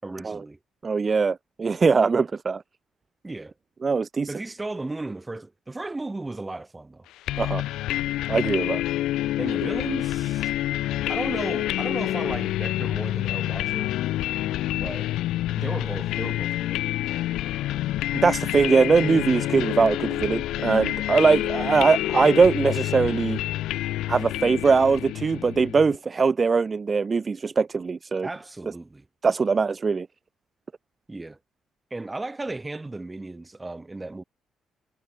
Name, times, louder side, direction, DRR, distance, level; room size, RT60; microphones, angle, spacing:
voice 1, 0.0-0.6 3.2-3.5 4.3-7.1 9.4-10.5 11.1-13.9 14.7-15.1 15.6-16.9 28.2-29.1 31.1-31.4 31.9-34.2, right 2 dB, 15° right, 5.7 m, -35 dB
voice 2, 0.8-2.6 3.8-4.3 7.4-7.6 8.3-8.8 18.1-23.4 24.1-28.3 29.2-30.1, right 4 dB, 35° right, 0.5 m, -21 dB
sound 1, 7.3-26.0, left 15 dB, 90° left, 4.3 m, -28 dB
cardioid pair, 90°, 0 cm